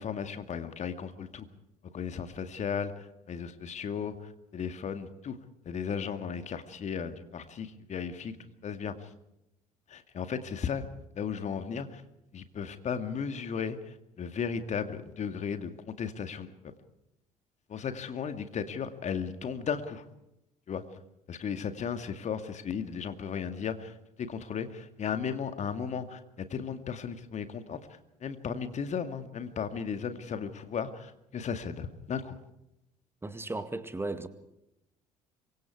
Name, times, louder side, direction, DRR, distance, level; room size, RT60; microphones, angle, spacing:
voice 1, 0.0-1.5 1.9-5.4 5.6-8.4 8.6-9.1 9.9-10.9 11.2-12.0 12.3-16.7 17.7-20.0 20.7-20.8 21.3-27.9 28.2-32.4, left 7 dB, 40° left, 9 dB, 2.2 m, -35 dB
voice 2, 33.2-34.3, right 2 dB, 10° right, 11 dB, 2.0 m, -35 dB
27.0 x 24.5 x 4.8 m, 0.85 s
figure-of-eight pair, 55°, 19 cm